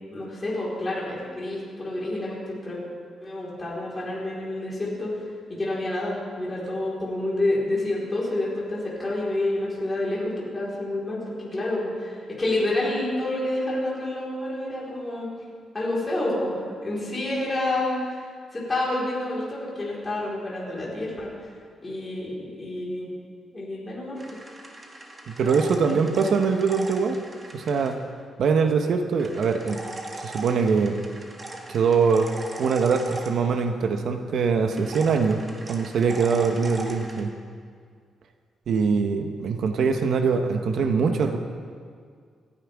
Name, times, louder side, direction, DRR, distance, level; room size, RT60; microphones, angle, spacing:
voice 1, 0.1-2.8 3.2-15.3 15.7-18.2 18.5-21.5 21.8-23.1 23.5-24.2 25.4-26.0, left 1 dB, 20° left, -6 dB, 4.3 m, -29 dB
sound 1, 24.2-27.9 29.2-33.8 34.7-37.2, right 2 dB, 20° right, 1.4 m, -39 dB
voice 2, 25.3-27.2 27.5-28.0 28.4-29.8 30.2-31.0 31.7-32.3 32.6-35.4 35.7-37.3 38.7-41.4, right 5 dB, 60° right, 6 dB, 1.0 m, -23 dB
28.0 x 9.9 x 3.6 m, 2.1 s
cardioid pair, 160°, 0 cm